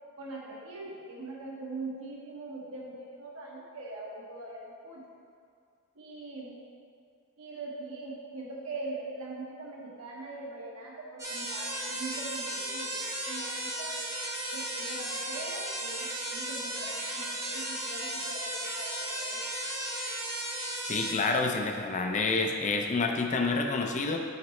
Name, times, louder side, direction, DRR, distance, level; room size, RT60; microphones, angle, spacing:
voice 1, 0.2-5.0 5.9-6.6 7.4-13.0 13.3-14.0 14.5-19.5, right 2 dB, 75° right, -4 dB, 1.3 m, -42 dB
sound 1, 11.2-21.1, right 1 dB, 15° right, 0.8 m, -35 dB
voice 2, 20.8-24.2, left 3 dB, 35° left, 3 dB, 0.5 m, -28 dB
7.8 x 4.0 x 3.2 m, 2.3 s
head